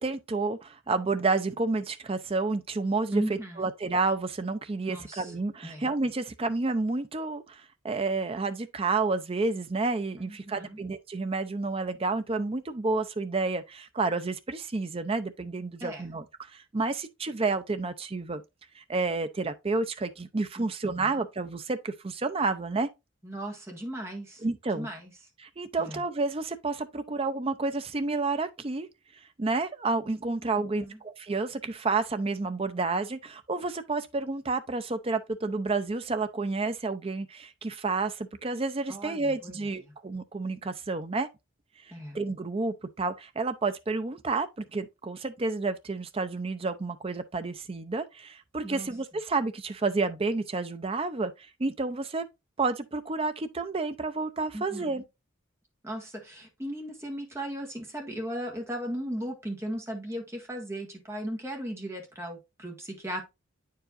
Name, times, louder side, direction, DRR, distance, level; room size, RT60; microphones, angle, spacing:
voice 1, 0.0-16.2 16.5-18.4 18.8-22.9 24.4-24.9 25.4-28.9 29.4-41.3 42.1-51.3 51.6-52.3 52.6-55.0, right 3 dB, 30° right, 0.5 m, -30 dB
voice 2, 3.1-3.7 4.9-5.3 5.6-5.8 10.2-10.8 15.8-16.1 20.6-20.7 21.0-21.2 23.2-24.4 24.7-25.1 25.8-26.0 30.7-31.0 38.9-39.6 39.8-39.9 41.9-42.2 48.6-48.9 54.5-55.0 55.8-63.2, right 1 dB, 15° right, 1.5 m, -37 dB
8.8 x 4.7 x 2.5 m
head